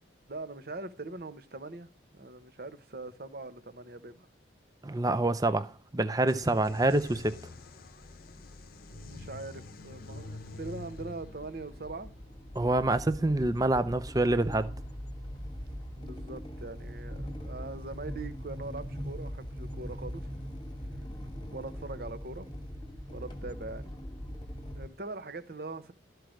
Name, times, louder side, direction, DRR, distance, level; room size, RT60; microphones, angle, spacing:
voice 1, 0.3-4.3 8.9-12.1 13.8-13.9 16.0-20.3 21.5-22.5 23.1-23.9 24.7-25.9, right 3 dB, 50° right, 0.9 m, -42 dB
voice 2, 4.8-7.4 12.5-14.7, right 2 dB, 20° right, 0.6 m, -26 dB
sound 1, 6.3-13.8, left 3 dB, 50° left, 0.7 m, -47 dB
sound 2, 10.6-24.9, equal, 25° left, 1.4 m, -41 dB
13.0 x 4.6 x 6.4 m
head